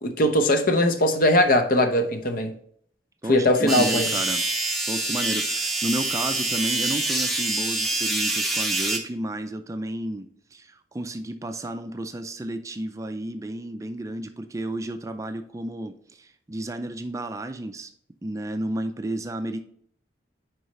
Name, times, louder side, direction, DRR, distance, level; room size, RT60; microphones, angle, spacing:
voice 1, 0.0-2.5 3.3-4.1, left 1 dB, 50° left, 0.8 m, -20 dB
voice 2, 3.2-4.4 4.9-17.9 18.2-19.6, right 1 dB, 20° right, 0.4 m, -32 dB
sound 1, 3.7-9.0, right 2 dB, ahead, 1.0 m, -26 dB
6.3 x 4.7 x 4.1 m
head